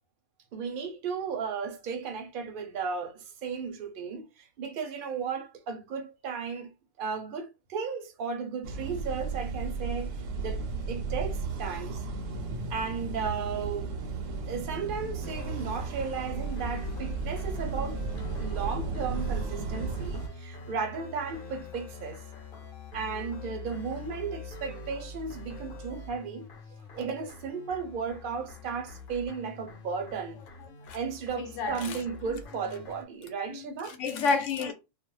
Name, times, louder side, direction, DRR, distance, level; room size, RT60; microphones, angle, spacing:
voice 1, 0.5-6.7 7.0-12.0 12.7-13.9 14.5-18.1 18.4-22.2 22.9-26.4 26.9-30.4 30.9-34.0, right 5 dB, 55° right, 0.6 m, -35 dB
sound 1, 8.6-20.3, right 4 dB, 90° right, 1.0 m, -34 dB
sound 2, 15.2-33.0, left 3 dB, 55° left, 0.7 m, -44 dB
voice 2, 31.3-32.0 33.5-34.7, left 4 dB, 80° left, 1.0 m, -30 dB
2.4 x 2.0 x 3.0 m
omnidirectional pair, 1.3 m